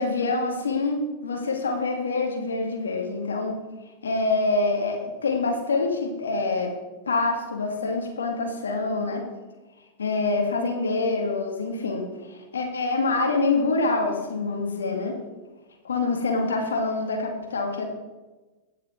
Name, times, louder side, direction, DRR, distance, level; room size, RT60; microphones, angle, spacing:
voice 1, 0.0-3.6 4.0-6.7 7.1-9.2 10.0-15.2 15.8-17.9, left 3 dB, 80° left, 2 dB, 2.2 m, -26 dB
18.5 x 6.6 x 4.5 m, 1.2 s
hypercardioid pair, 100°, 0 cm